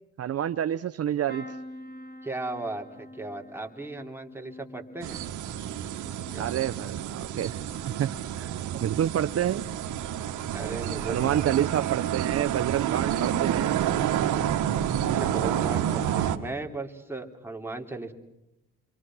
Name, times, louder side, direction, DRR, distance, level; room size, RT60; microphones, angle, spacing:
voice 1, 0.2-1.4 6.4-7.6 8.0-8.1 8.4-9.6 11.1-13.8, right 10 dB, 50° right, 9 dB, 0.8 m, -28 dB
sound 1, 1.3-9.1 9.5-10.1 11.3-11.5 11.8-11.9, left 1 dB, 30° left, 6.0 m, -47 dB
voice 2, 2.2-5.2 6.3-6.6 10.5-11.7 15.1-18.1, right 2 dB, 5° right, 2 dB, 3.2 m, -36 dB
sound 2, 5.0-16.4, right 10 dB, 80° right, 1.8 m, -29 dB
28.0 x 24.0 x 6.2 m, 0.88 s
cardioid pair, 90°, 30 cm